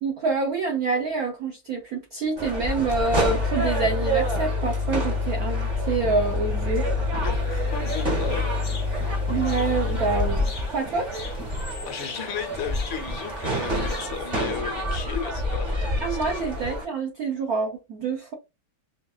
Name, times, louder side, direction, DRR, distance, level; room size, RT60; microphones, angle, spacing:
voice 1, 0.0-6.9 9.3-11.1 16.0-18.3, right 4 dB, 75° right, 0.8 m, -27 dB
sound 1, 2.4-16.8, right 1 dB, 35° right, 0.8 m, -29 dB
sound 2, 3.0-10.3, left 4 dB, 50° right, 1.2 m, -28 dB
voice 2, 7.2-8.5 10.1-10.2 11.9-16.5, left 7 dB, 70° left, 1.4 m, -35 dB
sound 3, 7.3-14.3, left 4 dB, 90° left, 0.5 m, -44 dB
4.4 x 2.3 x 2.3 m
omnidirectional pair, 2.4 m